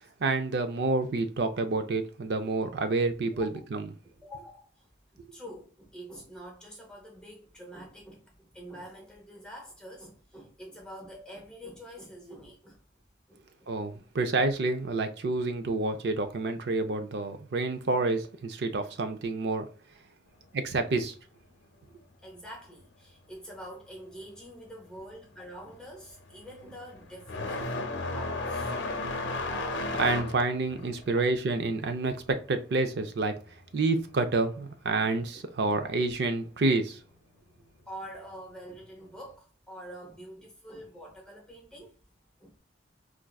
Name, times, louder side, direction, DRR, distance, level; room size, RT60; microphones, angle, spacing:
voice 1, 0.2-3.9 13.7-19.7 20.5-21.1 29.9-33.3 33.7-37.0, right 3 dB, 60° right, 0.5 m, -28 dB
voice 2, 4.0-12.8 13.3-14.0 22.2-27.8 28.1-29.1 37.9-41.9 42.4-42.6, equal, 5° left, 0.8 m, -46 dB
sound 1, 24.7-25.0 25.3-33.6 33.9-35.0 36.0-36.1 36.9-37.0 38.7-38.8, left 2 dB, 75° left, 0.6 m, -35 dB
4.4 x 2.5 x 2.3 m
head